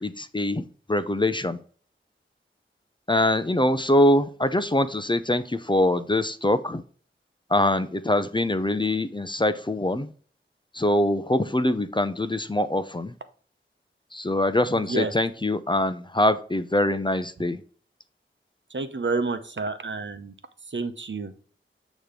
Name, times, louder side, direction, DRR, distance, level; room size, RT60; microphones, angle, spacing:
voice 1, 0.0-1.6 3.1-6.8 7.5-10.1 10.7-13.1 14.1-17.6, left 1 dB, 25° left, 11 dB, 0.6 m, -23 dB
voice 2, 18.7-20.3 20.7-21.3, right 3 dB, 60° right, 9 dB, 0.9 m, -29 dB
8.5 x 3.1 x 5.1 m, 0.43 s
wide cardioid pair, 60°, 21 cm